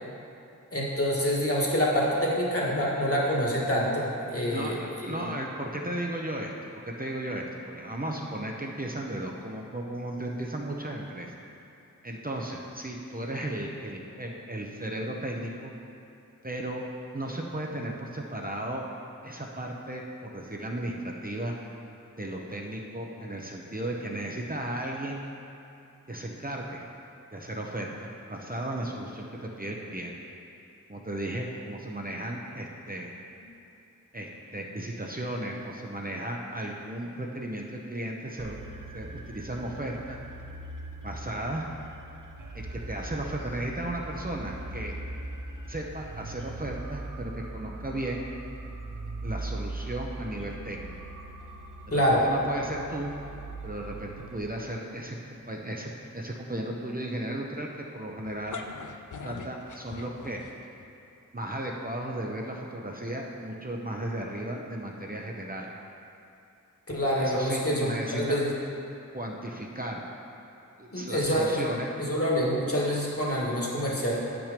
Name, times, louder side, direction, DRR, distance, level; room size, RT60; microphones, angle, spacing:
voice 1, 0.7-5.3 51.9-52.2 66.9-68.5 70.9-71.7 72.0-74.2, equal, 45° left, -4 dB, 1.9 m, -26 dB
voice 2, 4.5-11.3 12.0-15.7 16.4-16.8 17.1-18.8 19.2-21.5 22.2-25.2 26.1-26.8 27.3-30.1 30.9-33.1 34.1-38.6 38.9-40.2 41.0-41.7 42.5-44.9 45.7-48.3 49.2-50.9 51.9-53.1 53.6-58.6 59.2-60.4 61.3-65.7 67.2-68.5 69.1-70.0 70.8-71.9, right 1 dB, 25° right, -1 dB, 0.8 m, -35 dB
sound 1, 38.4-54.4, right 2 dB, 75° right, 0.8 m, -40 dB
sound 2, 58.2-60.8, left 5 dB, 65° left, 0.6 m, -41 dB
8.0 x 6.1 x 5.2 m, 2.8 s
wide cardioid pair, 45°, 32 cm